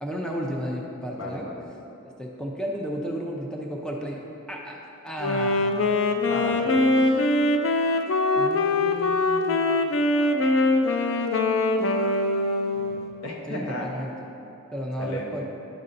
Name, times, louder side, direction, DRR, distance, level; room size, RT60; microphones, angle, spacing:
voice 1, 0.0-1.5 2.2-4.2 4.5-6.0 8.3-9.6 13.5-14.1 14.7-15.4, equal, 5° left, -1 dB, 0.5 m, -33 dB
voice 2, 1.1-1.6 6.3-7.2 12.8-13.9 15.0-15.4, left 1 dB, 85° left, -1 dB, 1.0 m, -35 dB
Wind instrument woodwind instrument, 5.2-13.2, left 2 dB, 65° left, 0.5 m, -23 dB
11.0 x 5.4 x 2.6 m, 3.0 s
head